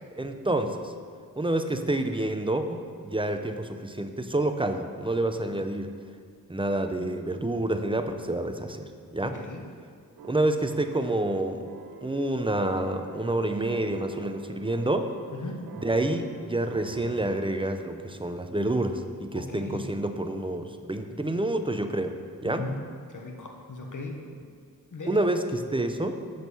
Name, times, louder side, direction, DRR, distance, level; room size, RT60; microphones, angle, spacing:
voice 1, 0.2-0.9 1.4-5.9 6.5-9.4 10.3-11.7 12.0-15.1 15.7-22.7 25.1-26.2, right 1 dB, 15° right, 7 dB, 0.6 m, -28 dB
voice 2, 9.2-9.6 15.4-15.6 19.3-19.8 22.4-22.7 23.1-24.4 24.9-25.2, left 2 dB, 55° left, 2 dB, 1.4 m, -38 dB
sound 1, 10.2-19.2, right 5 dB, 80° right, 0.7 m, -46 dB
8.1 x 6.5 x 5.5 m, 2.1 s
cardioid pair, 50°, 36 cm